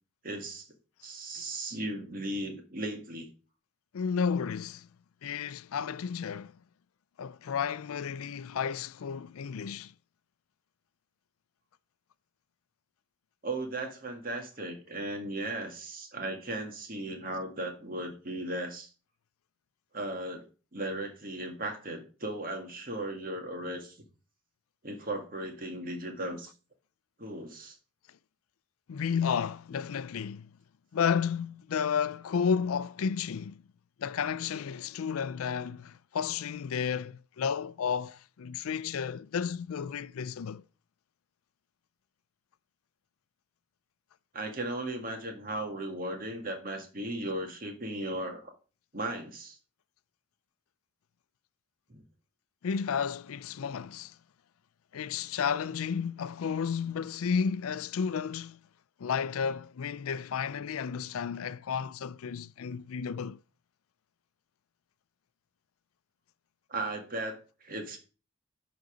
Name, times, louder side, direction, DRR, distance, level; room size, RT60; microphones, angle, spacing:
voice 1, 0.2-0.7 1.0-3.3 13.4-18.9 19.9-20.4 20.7-24.0 24.8-26.5 27.2-27.8 44.3-48.5 48.9-49.6 51.9-52.0 66.7-68.0, right 1 dB, 40° right, 1.8 m, -36 dB
voice 2, 3.9-4.9 5.2-6.6 7.2-9.9 28.9-30.5 30.9-33.6 34.0-40.6 52.6-54.1 54.9-58.6 59.0-63.4, left 6 dB, 90° left, 0.4 m, -32 dB
11.5 x 4.0 x 5.0 m
head